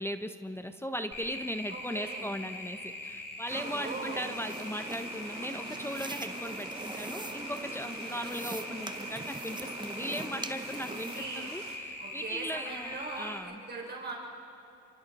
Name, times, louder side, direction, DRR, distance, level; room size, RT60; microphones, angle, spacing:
voice 1, 0.0-13.6, equal, 10° left, 7 dB, 0.8 m, -38 dB
sound 1, 1.1-13.4, left 2 dB, 35° left, 5.5 m, -42 dB
voice 2, 1.7-2.3 3.5-4.3 11.1-11.5 12.0-14.1, right 3 dB, 35° right, -1 dB, 4.1 m, -40 dB
sound 2, 3.5-11.3, right 2 dB, 15° right, 1.0 m, -43 dB
sound 3, 3.5-11.8, right 5 dB, 60° right, 3.2 m, -47 dB
29.0 x 24.5 x 4.2 m, 2.8 s
cardioid pair, 90°, 30 cm